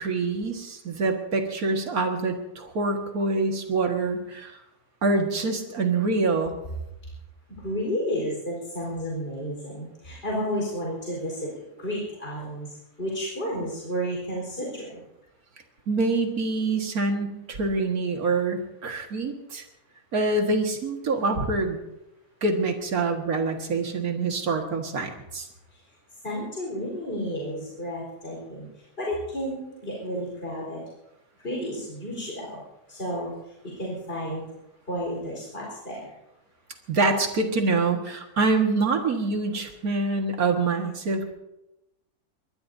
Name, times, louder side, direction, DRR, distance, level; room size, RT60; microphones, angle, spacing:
voice 1, 0.0-4.6 5.0-6.6 15.9-19.6 20.1-21.8 22.4-25.5 36.9-41.3, right 3 dB, 75° right, 3 dB, 2.3 m, -25 dB
voice 2, 7.6-11.5 11.8-12.7 13.0-15.0 26.2-28.7 29.0-30.8 31.4-32.6 32.9-33.3 33.8-34.5 34.9-36.1, equal, 40° left, -3 dB, 4.8 m, -31 dB
23.5 x 21.0 x 2.8 m, 0.90 s
omnidirectional pair, 1.5 m